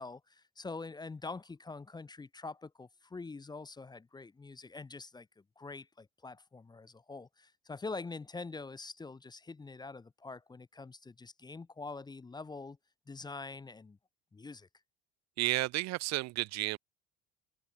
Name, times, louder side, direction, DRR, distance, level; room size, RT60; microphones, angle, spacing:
voice 1, 0.0-12.8 13.1-14.0 14.3-14.7, left 3 dB, 15° left, 0.6 m, -45 dB
voice 2, 15.4-16.8, right 19 dB, 55° right, 0.5 m, -32 dB
cardioid pair, 120°, 32 cm